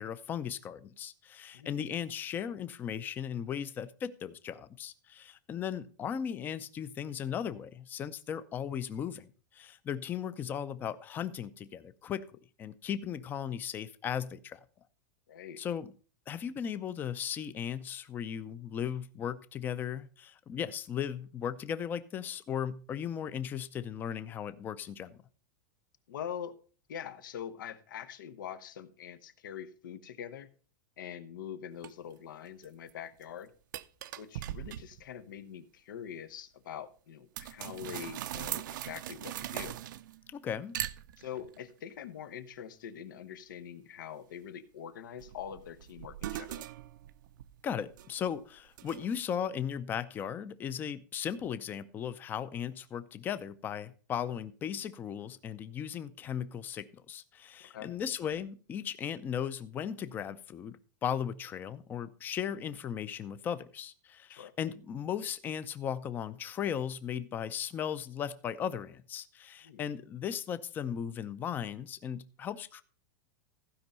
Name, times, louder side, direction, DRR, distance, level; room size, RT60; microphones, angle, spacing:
voice 1, 0.0-9.3 9.5-12.3 12.6-14.6 15.6-15.9 16.3-25.2 40.3-40.8 47.6-72.8, left 8 dB, 20° left, 14 dB, 0.5 m, -37 dB
voice 2, 15.3-15.6 26.1-26.5 26.9-30.5 31.0-33.5 34.1-39.8 41.2-46.7 57.7-57.9 64.3-64.5 69.6-69.9, left 9 dB, 85° left, 12 dB, 1.1 m, -44 dB
sound 1, 31.8-31.9 32.5-32.9 33.2-33.3 33.7-35.1 37.4-40.3 40.7-41.6 45.2-48.3 48.8-49.2, right 12 dB, 75° right, 0.6 m, -40 dB
15.0 x 5.2 x 5.5 m, 0.39 s
supercardioid pair, 160°, 10 cm